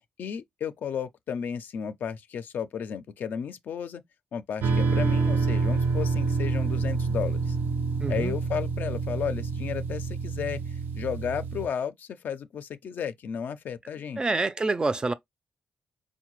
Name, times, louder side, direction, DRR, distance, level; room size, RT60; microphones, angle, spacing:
voice 1, 0.0-4.0 4.3-7.6 8.1-14.2, left 7 dB, 70° left, 0.4 m, -33 dB
sound 1, 4.6-11.7, right 4 dB, 80° right, 0.5 m, -27 dB
voice 2, 8.0-8.4 14.2-15.1, right 3 dB, 25° right, 0.3 m, -27 dB
4.4 x 2.1 x 3.0 m
cardioid pair, 95°, 3 cm